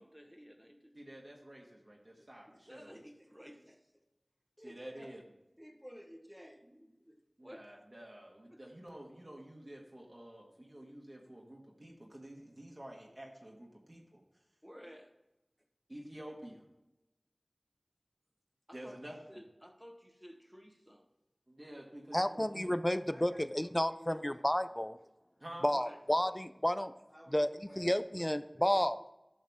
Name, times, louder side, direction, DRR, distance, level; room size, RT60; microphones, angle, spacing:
voice 1, 0.0-0.9 2.2-4.0 4.6-5.1 5.6-7.7 8.5-8.6 14.6-15.1 18.7-19.0 19.3-21.0 22.9-24.9 25.7-26.0 27.1-28.7, equal, 5° right, 4 dB, 1.4 m, -54 dB
voice 2, 0.9-3.0 4.6-5.2 7.4-14.2 15.9-16.7 18.7-19.2 21.5-22.5 25.4-25.7, right 1 dB, 45° right, -2 dB, 1.7 m, -50 dB
voice 3, 22.1-25.0 25.6-26.9 27.3-29.0, left 1 dB, 20° left, 12 dB, 0.4 m, -31 dB
12.0 x 6.4 x 3.6 m, 0.97 s
wide cardioid pair, 45°, 0 cm